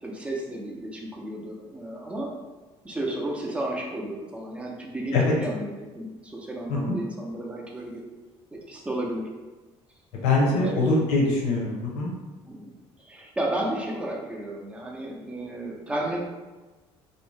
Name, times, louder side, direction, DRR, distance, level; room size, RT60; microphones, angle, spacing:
voice 1, 0.0-2.3 2.8-8.0 8.5-9.3 10.4-10.9 12.5-12.7 13.0-16.2, right 1 dB, 10° right, -1 dB, 0.4 m, -33 dB
voice 2, 10.2-12.1, left 2 dB, 90° left, -3 dB, 0.6 m, -23 dB
2.6 x 2.0 x 3.2 m, 1.2 s
cardioid pair, 145°, 11 cm